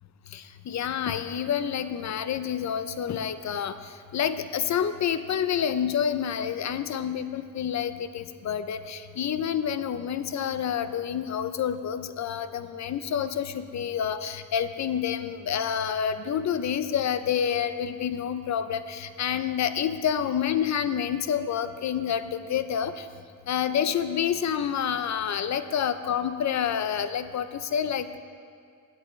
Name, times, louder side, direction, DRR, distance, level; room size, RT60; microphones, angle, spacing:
voice 1, 0.3-23.1 23.5-28.2, left 8 dB, 50° left, 12 dB, 0.5 m, -28 dB
16.0 x 8.3 x 3.2 m, 2.3 s
wide cardioid pair, 155°, 35 cm